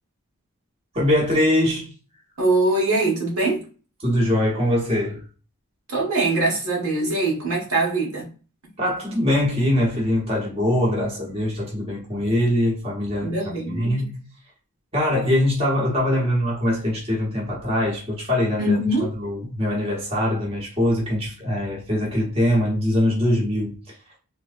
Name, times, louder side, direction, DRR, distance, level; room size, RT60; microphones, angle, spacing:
voice 1, 0.9-1.9 4.0-5.2 8.8-13.3 13.7-14.2 14.9-18.8 19.2-23.9, left 1 dB, 25° right, 1.2 m, -22 dB
voice 2, 2.4-3.6 5.9-8.3 13.2-14.1 18.6-19.1, right 2 dB, 80° right, 1.5 m, -22 dB
3.6 x 3.1 x 2.5 m
head